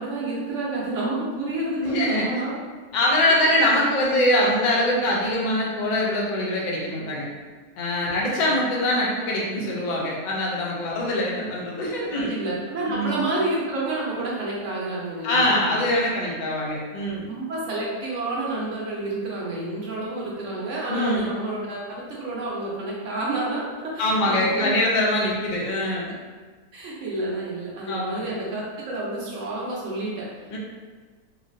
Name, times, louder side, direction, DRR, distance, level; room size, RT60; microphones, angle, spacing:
voice 1, 0.0-2.6 8.2-8.5 10.9-11.1 12.1-15.8 17.3-24.7 26.7-30.3, right 2 dB, 60° right, -4 dB, 0.9 m, -29 dB
voice 2, 1.8-2.3 2.9-7.3 7.8-12.3 12.9-13.2 15.2-17.3 20.9-21.3 24.0-26.1 27.9-28.4 30.5-30.6, left 1 dB, 80° left, -4 dB, 0.4 m, -23 dB
3.1 x 2.5 x 2.5 m, 1.4 s
omnidirectional pair, 1.6 m